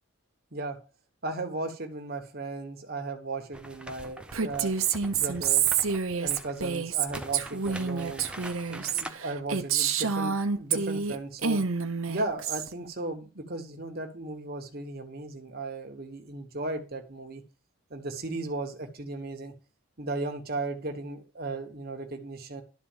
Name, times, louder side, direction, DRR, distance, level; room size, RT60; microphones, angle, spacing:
voice 1, 1.2-5.6 6.1-8.3 8.7-11.6 12.1-17.4 17.9-19.5 20.0-22.6, right 2 dB, 45° right, 5 dB, 1.3 m, -36 dB
sound 1, 3.5-9.1, right 1 dB, 5° right, 0.6 m, -44 dB
Female speech woman speaking, 4.3-11.2 11.4-12.7, right 6 dB, 80° right, 0.9 m, -28 dB
11.5 x 4.2 x 7.3 m, 0.36 s
head